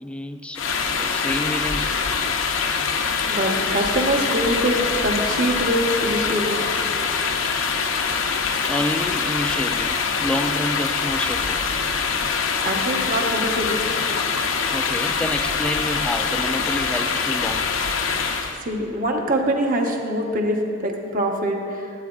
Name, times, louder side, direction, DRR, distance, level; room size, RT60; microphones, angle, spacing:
voice 1, 0.0-1.9 8.6-11.6 14.7-17.8, left 1 dB, 5° left, 8 dB, 0.3 m, -29 dB
sound 1, 0.6-18.6, left 5 dB, 75° left, 0.6 m, -24 dB
voice 2, 3.3-6.6 12.6-13.8 18.6-21.9, right 1 dB, 45° right, 1 dB, 1.0 m, -24 dB
16.5 x 8.7 x 2.4 m, 2.5 s
head